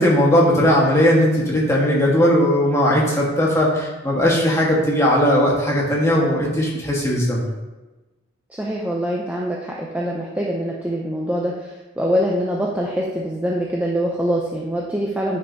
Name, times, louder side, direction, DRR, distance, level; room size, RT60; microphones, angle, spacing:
voice 1, 0.0-7.4, equal, 15° left, -4 dB, 1.4 m, -18 dB
voice 2, 8.6-15.4, equal, 5° right, -3 dB, 0.5 m, -24 dB
9.5 x 5.5 x 2.8 m, 1.1 s
head